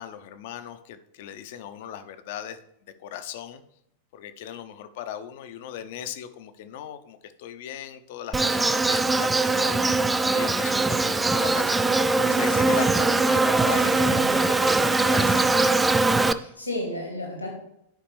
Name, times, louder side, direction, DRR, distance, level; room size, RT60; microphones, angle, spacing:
voice 1, 0.0-2.6 3.0-3.6 4.1-9.8 10.3-15.9, left 10 dB, 50° left, 10 dB, 0.7 m, -37 dB
Insect, 8.3-16.3, right 3 dB, 10° right, 0.3 m, -21 dB
voice 2, 14.0-14.3 16.3-17.5, left 1 dB, 85° left, 0 dB, 2.0 m, -32 dB
11.5 x 5.0 x 3.3 m, 0.77 s
figure-of-eight pair, 90°, 0 cm